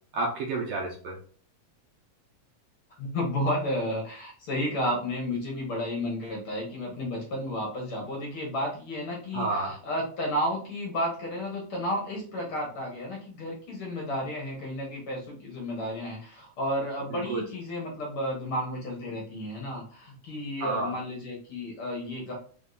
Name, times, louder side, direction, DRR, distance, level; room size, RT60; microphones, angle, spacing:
voice 1, 0.1-1.2 9.3-9.7 17.1-17.4 20.6-20.9, right 3 dB, 70° right, -1 dB, 1.5 m, -30 dB
voice 2, 3.0-22.3, left 1 dB, 60° left, -1 dB, 1.7 m, -32 dB
4.5 x 3.5 x 2.5 m, 0.43 s
omnidirectional pair, 3.3 m